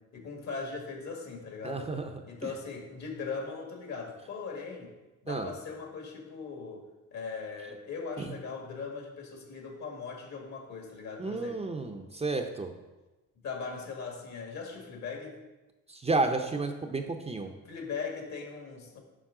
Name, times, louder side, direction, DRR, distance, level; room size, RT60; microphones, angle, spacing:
voice 1, 0.0-2.0 2.2-4.9 5.2-11.7 13.4-15.4 17.7-19.0, left 4 dB, 65° left, 1 dB, 1.8 m, -39 dB
voice 2, 1.6-2.1 2.4-2.5 5.3-5.5 8.2-8.3 11.2-12.7 15.9-17.5, right 3 dB, 20° right, 5 dB, 0.6 m, -31 dB
7.3 x 5.4 x 3.8 m, 1.1 s
cardioid pair, 90°, 30 cm